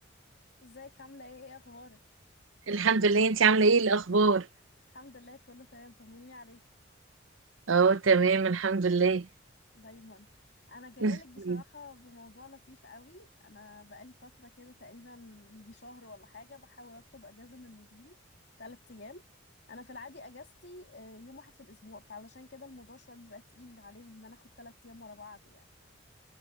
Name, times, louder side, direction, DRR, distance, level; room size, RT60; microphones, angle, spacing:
voice 1, 0.6-2.0 4.9-6.7 9.7-18.2 18.6-19.3 19.7-25.6, left 3 dB, 55° left, 2.6 m, -50 dB
voice 2, 2.7-4.4 7.7-9.2 11.0-11.2 11.5-11.6, right 4 dB, 80° right, 0.7 m, -23 dB
head